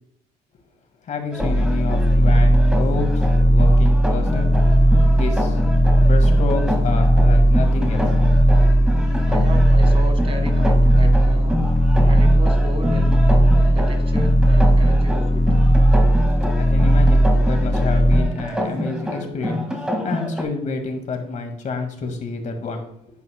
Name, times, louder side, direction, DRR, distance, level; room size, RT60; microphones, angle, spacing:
voice 1, 1.0-4.7 5.2-5.6 6.0-8.4 16.6-22.9, left 4 dB, 45° left, 5 dB, 1.9 m, -29 dB
sound 1, 1.3-20.4, equal, 5° right, 1.8 m, -28 dB
sound 2, 1.4-18.2, equal, 20° left, 1.2 m, -16 dB
voice 2, 9.2-11.6 12.1-13.3 13.7-15.6, right 1 dB, 35° right, 6 dB, 1.6 m, -34 dB
10.5 x 8.8 x 2.2 m, 0.75 s
cardioid pair, 110°, 17 cm